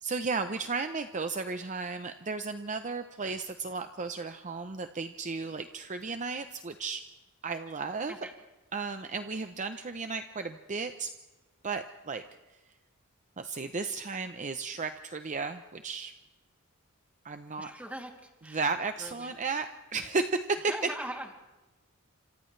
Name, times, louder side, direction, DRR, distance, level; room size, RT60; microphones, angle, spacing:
voice 1, 0.0-7.0 7.4-8.1 8.7-11.1 11.6-12.2 13.4-16.1 17.2-17.7 18.5-20.7, right 4 dB, 35° right, 8 dB, 0.7 m, -34 dB
voice 2, 17.6-18.6 19.0-19.3 20.7-21.3, right 1 dB, 5° right, 1 dB, 2.8 m, -41 dB
30.0 x 26.5 x 3.3 m, 1.1 s
head